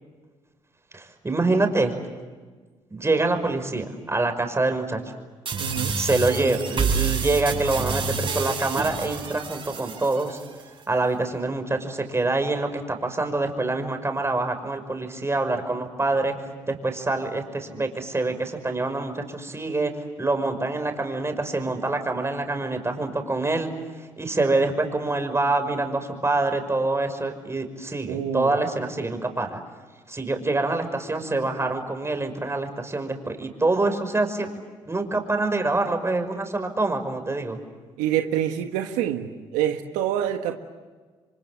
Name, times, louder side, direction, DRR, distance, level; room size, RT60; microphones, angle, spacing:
voice 1, 0.9-1.9 2.9-5.0 5.9-10.4 10.9-16.3 16.7-19.9 20.2-23.7 24.2-29.6 30.1-34.5 34.8-37.6, right 2 dB, 20° right, 6 dB, 5.9 m, -25 dB
sound 1, 5.5-10.5, right 5 dB, 45° right, 7.8 m, -28 dB
voice 2, 5.6-6.0 28.1-28.5 38.0-40.5, right 10 dB, 90° right, 5 dB, 1.5 m, -26 dB
29.5 x 25.0 x 7.8 m, 1.4 s
supercardioid pair, 60°, 12 cm